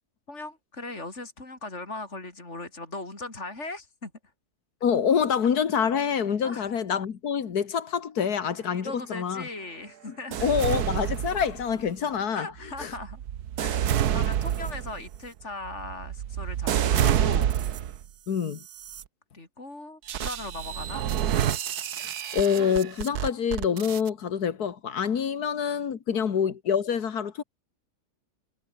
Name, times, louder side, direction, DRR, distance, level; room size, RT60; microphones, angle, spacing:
voice 1, 0.3-4.1 6.4-6.7 8.7-10.5 12.4-13.2 13.6-17.6 19.3-21.1 26.1-26.2, left 2 dB, 45° left, 5.6 m, -39 dB
voice 2, 4.8-9.5 10.4-12.5 12.8-12.9 18.3-18.6 22.0-27.4, left 7 dB, 75° left, 2.0 m, -26 dB
sound 1, 10.3-11.9 12.6-18.1 18.6-19.0 20.1-24.1, right 10 dB, 75° right, 1.5 m, -28 dB
omnidirectional pair, 1.6 m